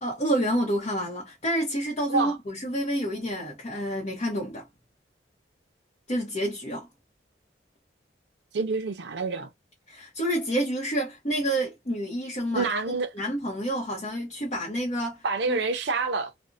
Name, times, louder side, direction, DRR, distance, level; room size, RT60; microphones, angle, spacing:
voice 1, 0.0-4.7 6.1-6.9 9.9-12.7 13.1-15.6, equal, 40° left, 0.7 m, -29 dB
voice 2, 8.5-9.5 12.5-13.1 15.2-16.3, right 4 dB, 75° right, 0.5 m, -27 dB
2.5 x 2.0 x 2.5 m
head